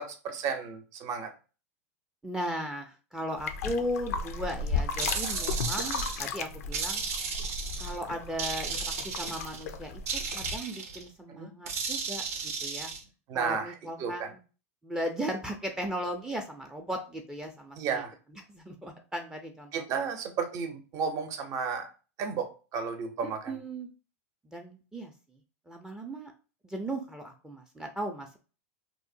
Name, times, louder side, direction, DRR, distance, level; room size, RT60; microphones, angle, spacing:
voice 1, 0.0-1.3 11.3-11.6 13.3-13.7 14.0-14.3 17.8-18.1 19.7-21.9 22.2-23.6, right 6 dB, 45° right, 6 dB, 0.6 m, -33 dB
voice 2, 2.2-7.0 7.8-12.9 13.3-14.4 14.8-18.0 18.5-19.8 23.2-23.9 24.5-25.1 25.7-26.3 26.6-28.4, equal, 5° right, 4 dB, 0.4 m, -37 dB
sound 1, 3.4-10.6, left 4 dB, 80° left, 0.4 m, -35 dB
sound 2, 5.0-6.3 6.7-8.0 8.4-9.6 10.1-11.0 11.7-13.0, right 5 dB, 80° right, 0.6 m, -34 dB
2.8 x 2.0 x 2.6 m, 0.34 s
hypercardioid pair, 110°, 8 cm